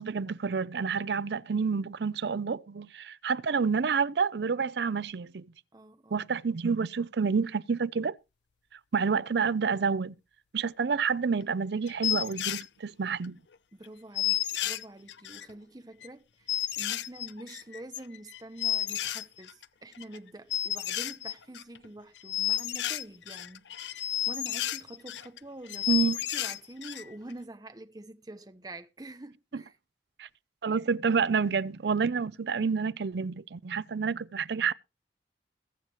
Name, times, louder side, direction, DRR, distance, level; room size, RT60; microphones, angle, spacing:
voice 1, 0.0-5.5 6.1-8.2 8.9-10.1 10.5-13.4 25.9-26.2 29.5-29.6 30.2-30.3 30.6-34.7, right 5 dB, 70° right, 0.5 m, -29 dB
voice 2, 5.7-6.2 13.8-26.0 26.3-29.8, right 1 dB, 20° right, 0.8 m, -46 dB
sound 1, 11.4-11.5 11.9-12.7 13.2-13.3 13.5-13.6 13.8-13.9 14.1-15.5 16.0-16.1 16.5-19.6 19.9-20.2 20.5-21.8 22.2-25.4 25.7-27.0 27.3-27.4, left 13 dB, 85° left, 0.6 m, -32 dB
21.5 x 7.3 x 2.9 m
head